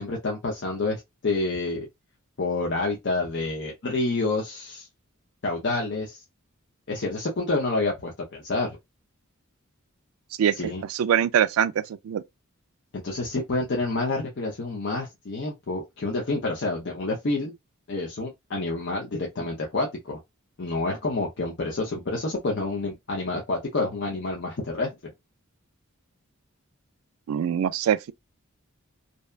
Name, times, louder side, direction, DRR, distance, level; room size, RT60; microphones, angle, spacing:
voice 1, 0.0-1.9 2.4-4.9 5.4-6.2 6.9-8.8 10.5-10.8 12.9-17.5 17.9-20.2 20.6-24.9, left 2 dB, 55° left, 0.6 m, -28 dB
voice 2, 10.9-12.2 27.3-28.1, right 9 dB, 85° right, 0.3 m, -23 dB
2.7 x 2.2 x 2.3 m
head